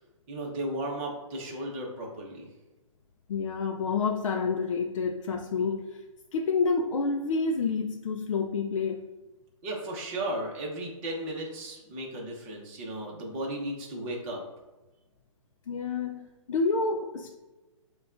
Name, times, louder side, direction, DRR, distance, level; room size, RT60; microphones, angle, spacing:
voice 1, 0.3-2.5 9.6-14.4, right 1 dB, 25° right, -2 dB, 0.9 m, -35 dB
voice 2, 3.3-6.0 6.3-9.1 15.7-17.4, left 4 dB, 70° left, 3 dB, 0.4 m, -29 dB
6.8 x 2.3 x 2.5 m, 1.1 s
hypercardioid pair, 160°, 17 cm